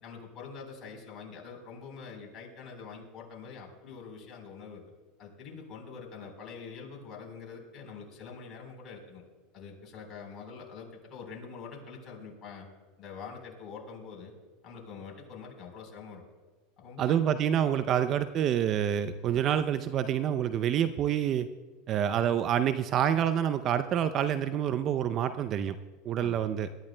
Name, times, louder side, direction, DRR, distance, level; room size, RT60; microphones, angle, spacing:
voice 1, 0.0-4.8 5.2-9.2 9.5-12.7 13.0-14.3 14.6-16.2 16.8-17.2 26.2-26.4, left 5 dB, 45° left, 1 dB, 4.0 m, -45 dB
voice 2, 17.0-21.5 21.9-25.8 26.0-26.7, right 9 dB, 45° right, 11 dB, 0.5 m, -27 dB
21.5 x 12.5 x 2.2 m, 1.3 s
hypercardioid pair, 95°, 0 cm